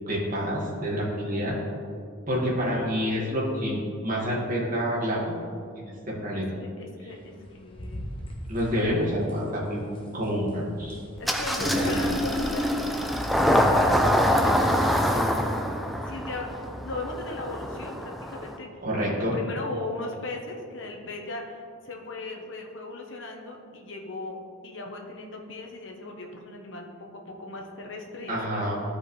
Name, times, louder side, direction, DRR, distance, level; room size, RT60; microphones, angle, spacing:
voice 1, 0.1-1.5 2.3-5.4 5.8-6.5 8.5-9.8 10.1-11.0 11.6-12.0 18.8-19.4 28.3-28.8, equal, 40° right, -5 dB, 1.8 m, -28 dB
voice 2, 6.3-8.1 11.2-15.5 16.0-18.7 19.3-28.6, left 2 dB, 60° left, 1 dB, 1.0 m, -38 dB
sound 1, 7.1-14.8, equal, 25° left, 0.9 m, -43 dB
Engine starting, 11.2-18.6, equal, ahead, 0.4 m, -25 dB
13.5 x 5.0 x 3.2 m, 2.3 s
head